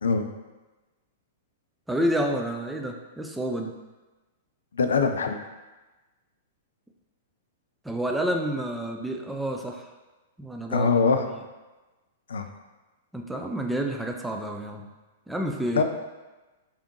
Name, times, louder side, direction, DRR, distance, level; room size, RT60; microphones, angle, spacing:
voice 1, 1.9-3.7 7.8-9.9 10.4-10.9 13.1-14.9 15.3-15.8, right 1 dB, 5° right, 2 dB, 0.4 m, -29 dB
voice 2, 4.7-5.4 10.7-11.3 12.3-12.5 15.7-15.8, left 5 dB, 65° left, 6 dB, 0.3 m, -22 dB
3.6 x 3.5 x 3.0 m, 1.2 s
figure-of-eight pair, 105°, 0 cm